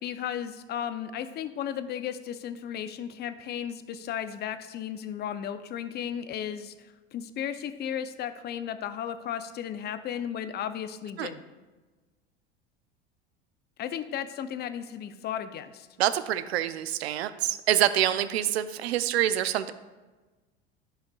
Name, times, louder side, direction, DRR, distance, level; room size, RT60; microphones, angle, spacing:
voice 1, 0.0-11.4 13.8-15.9, left 9 dB, 30° left, 11 dB, 0.6 m, -35 dB
voice 2, 16.0-19.7, right 12 dB, 80° right, 13 dB, 0.6 m, -26 dB
13.0 x 5.6 x 2.3 m, 1.2 s
hypercardioid pair, 85°, 31 cm